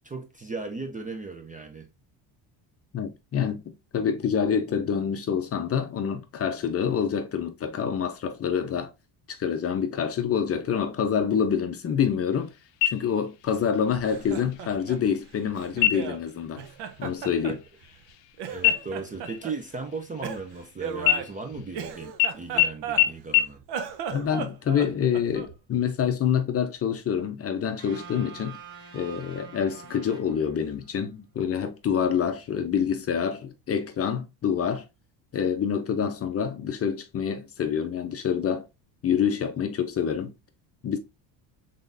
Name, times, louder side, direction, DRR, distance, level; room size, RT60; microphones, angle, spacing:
voice 1, 0.0-1.9 17.5-17.6 18.5-23.6, right 4 dB, 20° right, 0.4 m, -36 dB
voice 2, 2.9-3.6 3.9-8.9 9.3-12.5 12.8-16.6 17.0-17.6 24.1-28.6 28.9-34.8 35.3-38.7 39.0-40.3 40.8-41.0, left 7 dB, 30° left, 0.6 m, -27 dB
sound 1, 12.8-13.5 13.9-14.0 14.5-15.0 15.7-16.3 16.7-16.9 17.2-18.3 18.6-20.6 21.0-21.8 22.2-22.3 22.6-22.7 23.0-23.1 23.3-23.4, left 12 dB, 75° left, 0.6 m, -25 dB
Laughter, 14.0-16.2 16.6-18.1 18.4-19.6 20.2-23.3 23.6-25.6, right 7 dB, 60° right, 0.7 m, -36 dB
sound 2, 27.8-31.0, right 6 dB, 90° right, 1.5 m, -45 dB
3.7 x 3.7 x 2.5 m
cardioid pair, 115°, 45 cm